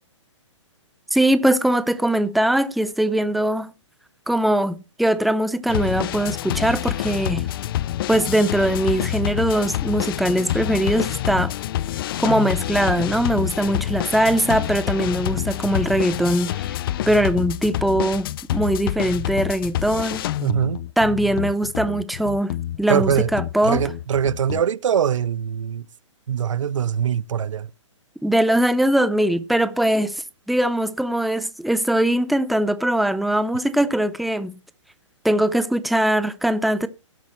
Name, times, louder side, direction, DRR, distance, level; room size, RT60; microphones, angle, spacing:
voice 1, 1.1-3.7 4.3-7.4 8.1-11.5 12.2-16.8 17.1-20.3 21.0-23.8 28.2-34.6 35.2-36.9, right 1 dB, ahead, 0.6 m, -21 dB
sound 1, 5.7-24.6, left 13 dB, 45° left, 0.6 m, -27 dB
voice 2, 20.4-20.8 22.9-23.3 23.6-25.8 26.3-27.7, right 8 dB, 75° right, 0.7 m, -22 dB
18.0 x 8.4 x 3.1 m
hypercardioid pair, 140°, 16 cm